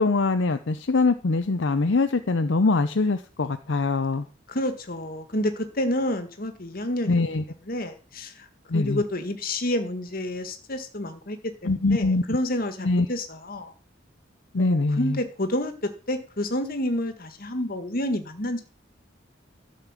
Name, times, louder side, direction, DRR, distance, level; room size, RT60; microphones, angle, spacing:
voice 1, 0.0-4.3 7.1-7.4 8.7-9.0 11.6-12.2 12.8-13.1 14.5-15.2, left 3 dB, 70° left, 9 dB, 0.7 m, -23 dB
voice 2, 4.5-7.2 7.7-8.5 8.7-11.4 11.6-13.7 14.6-14.7 15.0-18.6, left 1 dB, 50° left, 8 dB, 1.7 m, -29 dB
12.5 x 5.4 x 7.4 m, 0.37 s
head